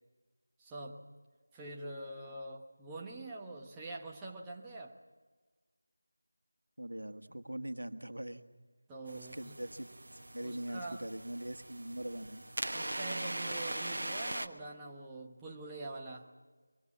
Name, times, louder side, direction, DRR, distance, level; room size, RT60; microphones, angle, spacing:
voice 1, 0.6-1.0 1.5-5.0 8.9-9.6 10.4-11.1 12.7-16.3, right 2 dB, 10° right, -3 dB, 1.0 m, -45 dB
voice 2, 6.8-8.4 9.1-9.9 10.3-12.4, right 1 dB, 90° right, 8 dB, 1.5 m, -42 dB
sound 1, 9.1-14.5, right 1 dB, 65° right, 1.2 m, -40 dB
23.5 x 23.0 x 7.3 m, 1.3 s
figure-of-eight pair, 170°, 0 cm